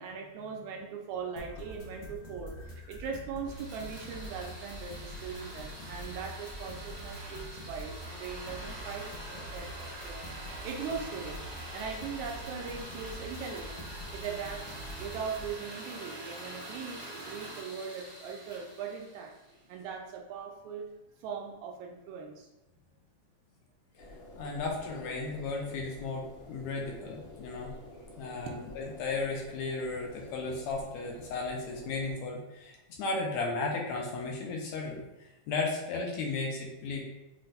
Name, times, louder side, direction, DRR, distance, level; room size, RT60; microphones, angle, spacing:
voice 1, 0.0-10.2 10.6-11.4 11.7-13.9 14.1-19.3 19.7-20.9 21.2-22.5, right 6 dB, 80° right, 2 dB, 1.8 m, -40 dB
sound 1, 1.4-15.5, equal, 60° left, 1.6 m, -45 dB
sound 2, 3.4-19.6, right 1 dB, 50° right, 0.7 m, -45 dB
sound 3, 24.0-32.1, left 1 dB, 45° left, 1.1 m, -50 dB
voice 2, 24.4-27.7 28.2-37.0, left 3 dB, 80° left, 0 dB, 1.7 m, -35 dB
6.3 x 2.2 x 3.8 m, 0.96 s
omnidirectional pair, 3.5 m